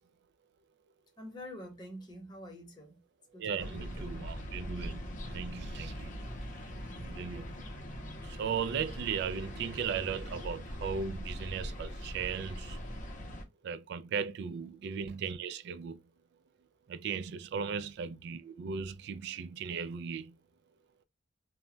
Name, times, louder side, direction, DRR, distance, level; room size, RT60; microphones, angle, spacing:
voice 1, 1.2-3.0 3.3-4.2 7.9-8.0 17.6-17.9, left 1 dB, 25° left, 0.9 m, -47 dB
voice 2, 3.3-6.3 7.0-7.5 8.2-12.8 13.6-16.0 16.9-20.4, right 6 dB, 60° right, 0.3 m, -37 dB
sound 1, 3.6-13.4, equal, 45° left, 0.6 m, -41 dB
2.2 x 2.1 x 3.7 m
head